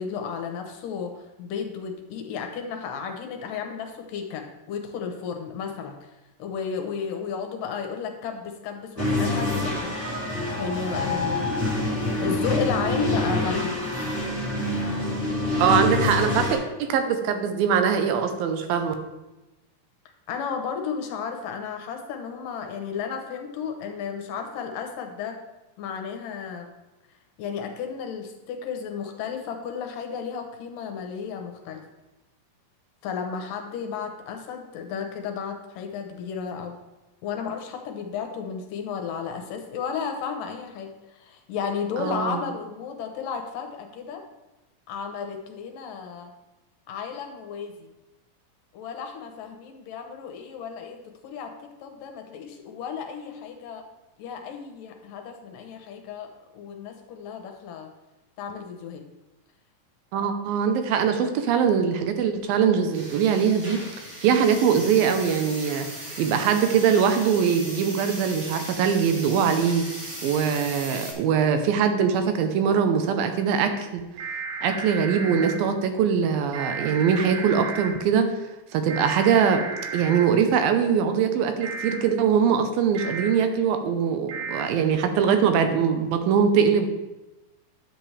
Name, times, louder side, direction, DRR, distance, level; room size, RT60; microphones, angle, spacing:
voice 1, 0.0-6.0 6.4-10.2 10.6-11.5 12.2-13.7 15.8-16.1 20.3-25.4 25.8-26.7 27.4-31.8 33.0-36.8 37.2-44.3 44.9-46.3 46.9-47.9 48.7-53.9 54.2-57.9 58.4-59.1, left 6 dB, 75° left, 4 dB, 2.4 m, -33 dB
sound 1, 9.0-16.5, left 2 dB, 5° right, 1.7 m, -26 dB
voice 2, 15.6-18.9 42.0-42.4 60.1-63.8 64.2-65.9 66.2-69.8 70.2-74.0 74.6-78.3 78.7-79.6 79.9-86.9, right 7 dB, 90° right, 7 dB, 2.6 m, -22 dB
sound 2, 62.9-71.1, right 1 dB, 30° right, 1.7 m, -38 dB
sound 3, 74.2-75.5 76.5-77.9 78.9-80.2 81.6-82.0 82.9-83.3 84.3-84.6, right 4 dB, 70° right, 2.8 m, -33 dB
10.5 x 7.7 x 3.3 m, 1.0 s
omnidirectional pair, 4.1 m